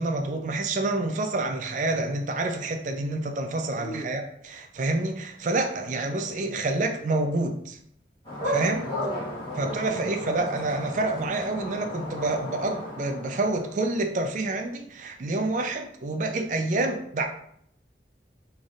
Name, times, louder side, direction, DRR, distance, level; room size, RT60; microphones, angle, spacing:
voice 1, 0.0-7.8 8.4-8.9 9.6-17.3, right 2 dB, 45° right, 5 dB, 0.4 m, -28 dB
voice 2, 3.7-4.1 8.8-10.1, equal, 60° left, 0 dB, 0.8 m, -37 dB
sound 1, 8.2-14.0, left 1 dB, 30° left, 1.3 m, -34 dB
4.0 x 3.3 x 2.4 m, 0.68 s
head